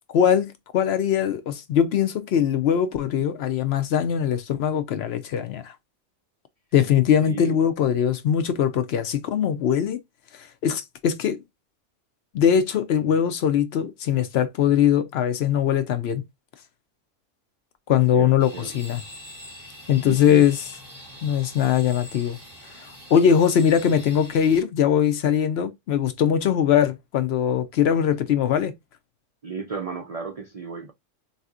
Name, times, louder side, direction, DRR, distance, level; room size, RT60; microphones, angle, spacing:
voice 1, 0.1-5.7 6.7-10.0 10.6-11.4 12.3-16.2 17.9-19.0 19.9-20.7 21.2-22.4 23.1-28.7, left 9 dB, 65° left, 0.7 m, -21 dB
voice 2, 7.2-7.6 17.9-18.8 20.0-20.5 29.4-30.9, right 4 dB, 60° right, 0.3 m, -34 dB
sound 1, 18.4-24.6, left 1 dB, 20° right, 2.4 m, -44 dB
4.0 x 2.7 x 2.3 m
omnidirectional pair, 1.3 m